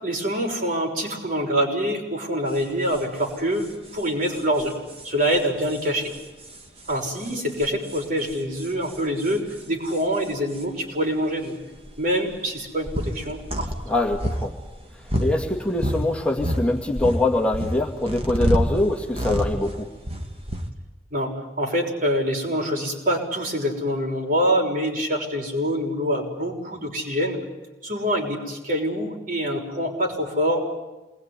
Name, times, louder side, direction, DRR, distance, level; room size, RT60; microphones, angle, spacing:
voice 1, 0.0-3.7 3.9-4.7 5.0-6.1 6.9-11.5 12.0-13.7 21.1-27.4 27.8-30.7, equal, 50° right, 0 dB, 6.2 m, -25 dB
sound 1, 2.5-2.6 2.9-3.0 3.3-3.4 3.6-10.7 11.4-11.5 11.8-16.1 16.4-20.7, equal, 30° right, 2.5 m, -29 dB
voice 2, 13.9-14.5 15.2-19.9, left 2 dB, 5° left, 0 dB, 2.2 m, -23 dB
27.5 x 21.5 x 9.8 m, 1.1 s
head